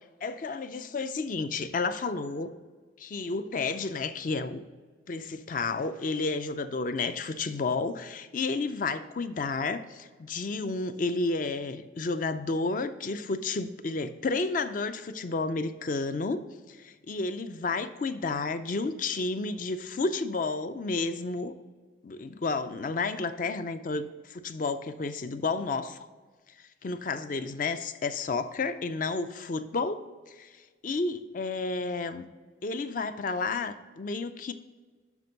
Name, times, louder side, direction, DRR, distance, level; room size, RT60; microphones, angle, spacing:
voice 1, 0.2-2.5 3.0-4.7 5.1-21.5 22.0-26.0 26.8-30.0 30.3-30.5 30.8-32.2 32.6-34.5, left 3 dB, 45° left, 11 dB, 0.4 m, -31 dB
6.1 x 5.9 x 5.2 m, 1.4 s
head